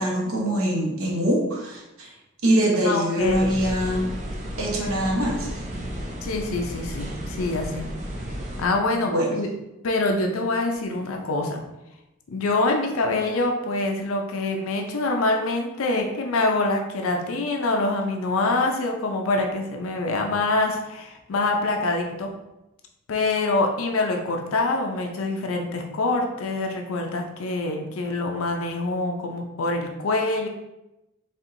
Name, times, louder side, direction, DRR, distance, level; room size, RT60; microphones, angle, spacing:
voice 1, 0.0-2.1 2.4-4.1 4.6-5.5 9.0-9.3, equal, 85° right, -1 dB, 1.0 m, -23 dB
voice 2, 2.8-3.6 6.2-7.9 8.6-9.5 9.8-11.6 12.3-22.3 23.1-30.5, left 2 dB, 80° left, 3 dB, 0.5 m, -25 dB
sound 1, 3.2-8.6, equal, 35° right, 0.6 m, -33 dB
4.3 x 3.5 x 2.6 m, 0.94 s
head